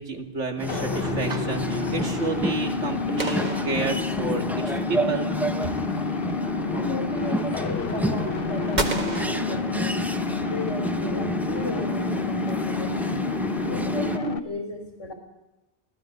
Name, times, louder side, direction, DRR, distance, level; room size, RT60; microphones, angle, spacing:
voice 1, 0.0-5.3, right 3 dB, 85° right, 4 dB, 2.7 m, -30 dB
sound 1, 0.6-14.2, right 1 dB, ahead, 0.8 m, -31 dB
sound 2, 0.7-14.4, left 4 dB, 50° left, 1.3 m, -29 dB
sound 3, 3.2-4.6 8.8-10.3, right 2 dB, 40° right, 2.0 m, -32 dB
voice 2, 6.7-10.0 10.4-13.4 13.7-15.1, left 1 dB, 80° left, 4 dB, 4.6 m, -34 dB
24.5 x 16.0 x 8.0 m, 1.0 s
omnidirectional pair, 1.2 m